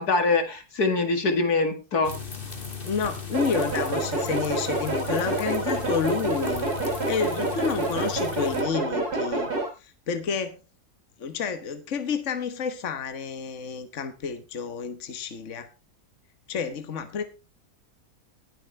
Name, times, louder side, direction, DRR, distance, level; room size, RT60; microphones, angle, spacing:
voice 1, 0.0-2.1, left 3 dB, 80° left, 7 dB, 2.6 m, -24 dB
sound 1, 2.0-8.6, left 5 dB, 35° left, 2.5 m, -37 dB
voice 2, 2.8-6.7 7.1-9.5 9.8-10.6 11.2-15.7 16.5-17.2, left 6 dB, 55° left, 10 dB, 1.5 m, -30 dB
sound 2, 3.3-9.7, right 2 dB, 80° right, 4.2 m, -28 dB
19.5 x 7.8 x 3.3 m, 0.28 s
omnidirectional pair, 1.6 m